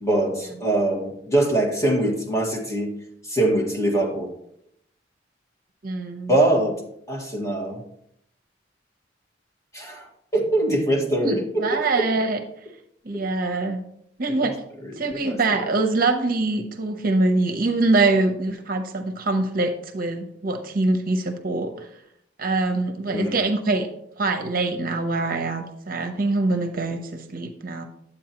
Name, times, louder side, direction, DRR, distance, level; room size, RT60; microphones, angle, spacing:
voice 1, 0.0-2.9 3.2-4.3 6.3-6.8 7.1-7.8 9.7-10.0 10.3-12.0 15.1-15.6 23.1-23.4, right 1 dB, 15° left, -1 dB, 1.7 m, -23 dB
voice 2, 5.8-6.3 11.2-12.4 13.0-13.8 14.2-14.5 15.0-21.9 22.4-23.9 24.2-27.9, right 2 dB, 55° right, 6 dB, 0.8 m, -24 dB
9.9 x 8.0 x 2.9 m, 0.73 s
head